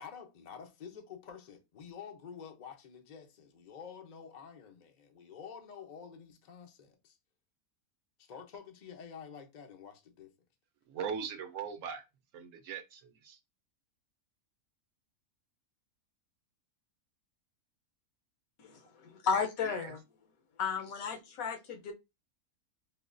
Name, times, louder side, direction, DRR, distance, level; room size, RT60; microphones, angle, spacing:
voice 1, 0.0-7.2 8.2-10.3, left 7 dB, 55° left, 0.5 m, -49 dB
voice 2, 10.9-12.0 12.3-13.4 19.7-19.9, right 7 dB, 65° right, 0.9 m, -40 dB
voice 3, 18.6-20.0 20.6-21.9, left 6 dB, 75° left, 1.1 m, -34 dB
5.3 x 2.2 x 2.5 m
omnidirectional pair, 1.5 m